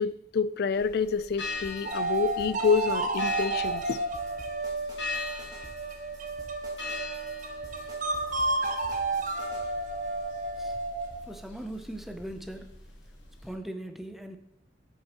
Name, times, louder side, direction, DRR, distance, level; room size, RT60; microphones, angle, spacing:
voice 1, 0.0-4.0, left 5 dB, 55° left, 15 dB, 0.3 m, -28 dB
sound 1, 0.7-13.5, left 3 dB, 75° left, 1.4 m, -42 dB
sound 2, 1.6-9.6, right 1 dB, 20° right, 1.4 m, -50 dB
sound 3, 1.8-11.3, right 2 dB, 40° right, 0.6 m, -31 dB
voice 2, 11.2-12.9 13.4-14.4, right 1 dB, ahead, 6 dB, 0.6 m, -40 dB
9.0 x 6.4 x 3.0 m, 0.80 s
head